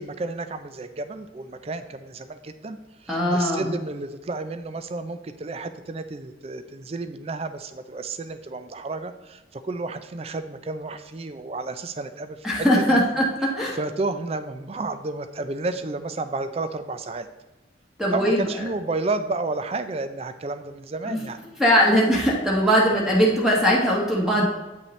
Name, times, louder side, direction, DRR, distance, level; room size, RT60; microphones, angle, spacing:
voice 1, 0.0-13.0 13.7-17.3 18.1-21.4, right 3 dB, 35° right, 10 dB, 0.4 m, -31 dB
voice 2, 3.1-3.6 12.4-13.2 13.5-13.8 18.0-18.4 21.1-21.2 21.6-24.5, equal, 5° right, -4 dB, 1.2 m, -20 dB
8.6 x 5.5 x 3.2 m, 1.1 s
head